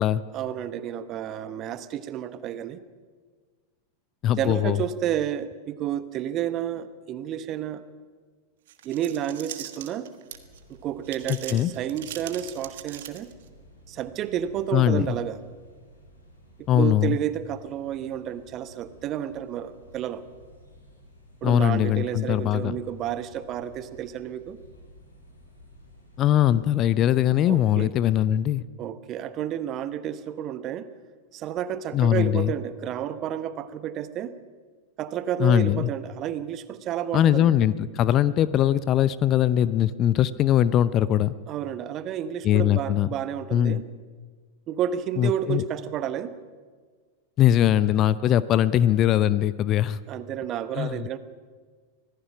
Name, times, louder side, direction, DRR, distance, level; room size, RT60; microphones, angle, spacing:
voice 1, 0.3-2.8 4.4-7.8 8.8-10.1 10.7-13.3 13.9-15.4 16.7-20.2 21.4-24.6 27.4-27.9 28.8-30.9 31.3-34.3 35.0-37.5 41.5-43.8 44.7-46.3 50.1-51.2, right 10 dB, 35° right, 13 dB, 1.2 m, -31 dB
voice 2, 4.2-4.8 11.3-11.7 14.7-15.1 16.7-17.2 21.4-22.8 26.2-28.6 31.9-32.5 35.4-35.9 37.1-41.3 42.4-43.1 43.5-43.8 45.2-45.6 47.4-50.0 50.8-51.0, left 11 dB, 35° left, 18 dB, 0.6 m, -21 dB
sound 1, 8.7-10.6 11.0-13.5, right 12 dB, 55° right, 1.5 m, -40 dB
sound 2, 10.3-26.9, equal, 80° left, 7.3 m, -53 dB
25.5 x 18.5 x 5.9 m, 1.5 s
figure-of-eight pair, 90°, 0 cm